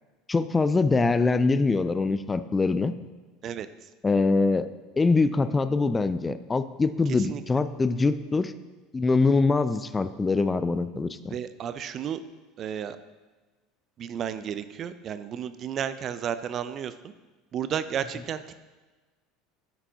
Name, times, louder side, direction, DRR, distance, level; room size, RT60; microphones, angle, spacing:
voice 1, 0.3-2.9 4.0-4.7 5.0-8.5 8.9-11.3, left 3 dB, 20° left, 13 dB, 0.4 m, -23 dB
voice 2, 7.1-7.4 11.3-12.2 12.6-13.0 14.0-17.1 17.5-18.5, right 9 dB, 45° right, 12 dB, 0.4 m, -32 dB
11.0 x 6.0 x 2.8 m, 1.3 s
hypercardioid pair, 75°, 0 cm